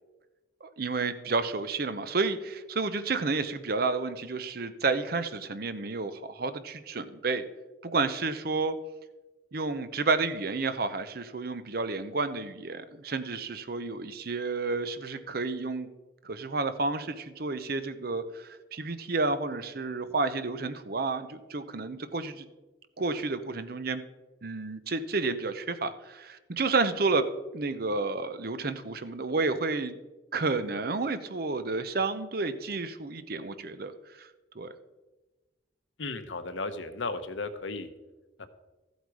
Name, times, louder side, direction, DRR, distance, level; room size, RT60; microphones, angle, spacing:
voice 1, 0.6-7.4 7.8-8.7 9.5-15.9 16.2-22.5 23.0-24.0 24.4-27.3 27.5-30.0 30.3-33.9 34.2-34.3 34.5-34.7, right 3 dB, 55° right, 11 dB, 0.8 m, -30 dB
voice 2, 36.0-37.9 38.4-38.5, left 3 dB, 90° left, 10 dB, 1.0 m, -35 dB
14.0 x 8.1 x 4.8 m, 1.2 s
head